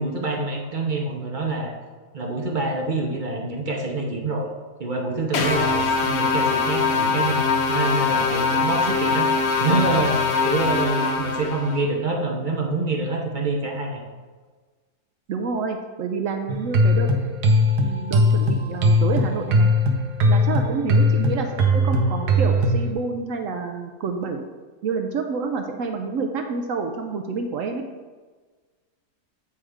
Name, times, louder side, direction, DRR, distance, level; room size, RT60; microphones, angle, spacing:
voice 1, 0.0-1.7 2.1-4.5 4.8-7.4 7.7-10.2 10.4-14.0, right 3 dB, 40° right, 0 dB, 0.8 m, -26 dB
sound 1, 5.3-11.8, left 4 dB, 55° left, 0.8 m, -22 dB
voice 2, 15.3-17.1 17.8-19.7 20.3-24.4 24.8-27.8, right 4 dB, 70° right, 4 dB, 0.8 m, -28 dB
sound 2, 16.5-22.9, left 1 dB, 90° right, 1.3 m, -20 dB
8.5 x 3.3 x 4.8 m, 1.4 s
omnidirectional pair, 1.7 m